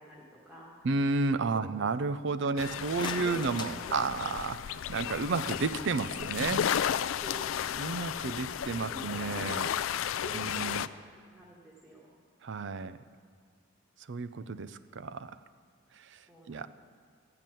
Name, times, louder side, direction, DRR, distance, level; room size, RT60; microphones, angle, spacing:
voice 1, 0.0-0.7 1.5-1.9 2.7-4.3 7.1-12.2 16.3-16.7, equal, 5° right, -5 dB, 1.6 m, -49 dB
voice 2, 0.8-6.7 7.8-9.7 10.3-10.9 12.4-13.0 14.1-15.3 15.9-16.7, right 4 dB, 65° right, 13 dB, 0.5 m, -32 dB
sound 1, 2.6-10.9, left 9 dB, 80° left, 0.4 m, -33 dB
sound 2, 2.7-4.7, left 4 dB, 25° left, 0.6 m, -44 dB
14.0 x 5.8 x 9.1 m, 2.1 s
head